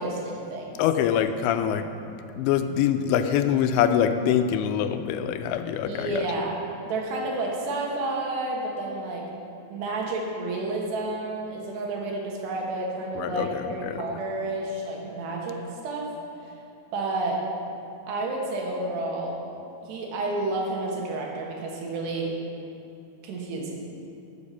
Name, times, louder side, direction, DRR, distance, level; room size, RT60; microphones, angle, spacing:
voice 1, 0.0-0.8 5.8-9.3 9.7-16.1 16.4-16.5 16.9-17.4 18.1-19.4 19.8-22.4 23.2-23.8, right 2 dB, 75° right, -1 dB, 3.5 m, -30 dB
voice 2, 0.8-1.9 2.4-6.2 13.2-14.0, left 9 dB, 90° left, 9 dB, 2.9 m, -24 dB
13.5 x 7.5 x 5.5 m, 2.7 s
omnidirectional pair, 5.1 m